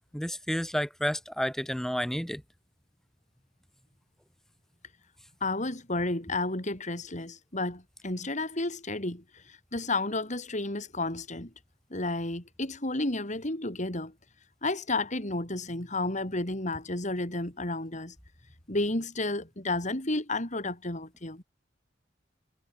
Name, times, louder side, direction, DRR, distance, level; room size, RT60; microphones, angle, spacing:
voice 1, 0.1-2.4, equal, ahead, 6.6 m, -30 dB
voice 2, 5.4-11.5 11.9-14.1 14.6-18.1 18.7-21.4, left 2 dB, 40° left, 4.5 m, -32 dB
head